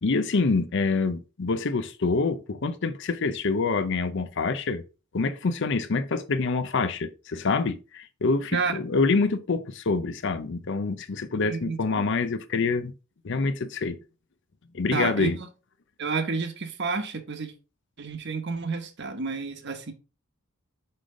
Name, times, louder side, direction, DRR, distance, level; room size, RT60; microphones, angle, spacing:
voice 1, 0.0-4.8 5.1-12.9 13.2-14.0 14.7-15.4, left 4 dB, 55° left, 0.6 m, -26 dB
voice 2, 11.5-12.1 14.9-15.3 16.0-17.5 18.0-19.9, right 4 dB, 50° right, 1.1 m, -30 dB
5.6 x 5.1 x 3.7 m
head